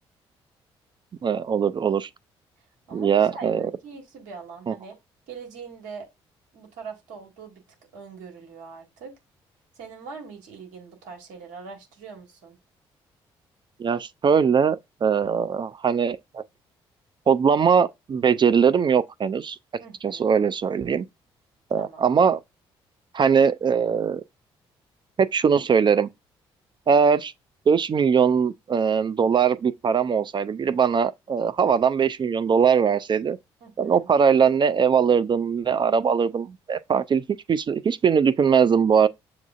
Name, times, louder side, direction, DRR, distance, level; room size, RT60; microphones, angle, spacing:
voice 1, 1.2-2.1 2.9-3.6 4.7-4.8 13.8-16.4 17.3-19.6 20.0-21.1 21.7-22.4 23.1-24.2 25.2-26.1 26.9-27.3 27.7-33.4 33.8-37.2 37.5-39.1, right 6 dB, 40° right, 0.4 m, -21 dB
voice 2, 2.9-5.0 5.3-6.1 6.5-7.6 7.9-9.1 9.7-12.6 19.8-20.3 21.8-22.3 33.6-34.1, right 5 dB, 75° right, 1.8 m, -42 dB
7.1 x 2.5 x 2.4 m
hypercardioid pair, 50°, 12 cm